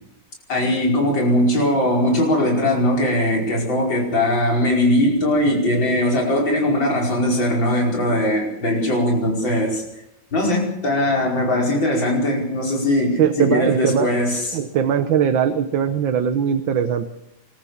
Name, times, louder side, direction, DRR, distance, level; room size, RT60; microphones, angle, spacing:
voice 1, 0.5-9.8 10.3-14.6, left 1 dB, 80° left, 0 dB, 5.8 m, -20 dB
voice 2, 13.2-14.1 14.5-17.1, right 8 dB, 90° right, 8 dB, 1.8 m, -20 dB
25.5 x 14.0 x 7.3 m, 0.84 s
omnidirectional pair, 2.0 m